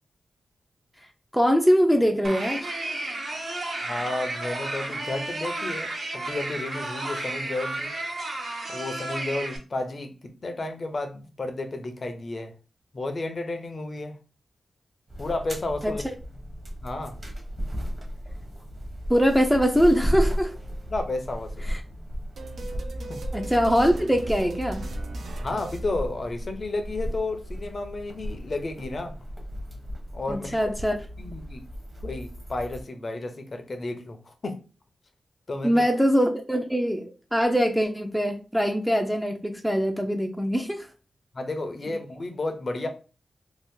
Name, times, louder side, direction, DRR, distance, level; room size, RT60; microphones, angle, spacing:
voice 1, 1.3-2.7 15.8-16.0 19.1-20.6 21.6-21.8 23.3-24.9 30.3-31.0 35.6-40.9 41.9-42.0, equal, ahead, 0.4 m, -23 dB
sound 1, 2.2-9.6, right 2 dB, 60° right, 0.9 m, -32 dB
voice 2, 3.8-7.9 8.7-12.5 12.9-14.2 15.2-16.0 16.8-17.2 20.9-21.7 23.1-23.2 25.4-29.1 30.1-30.6 31.2-31.6 32.0-34.6 35.5-35.8 41.3-42.9, left 2 dB, 45° left, 0.6 m, -32 dB
sound 2, 15.1-32.8, equal, 35° right, 0.9 m, -35 dB
sound 3, 22.4-26.7, right 2 dB, 80° right, 0.5 m, -38 dB
2.7 x 2.4 x 3.5 m
wide cardioid pair, 100°, 0 cm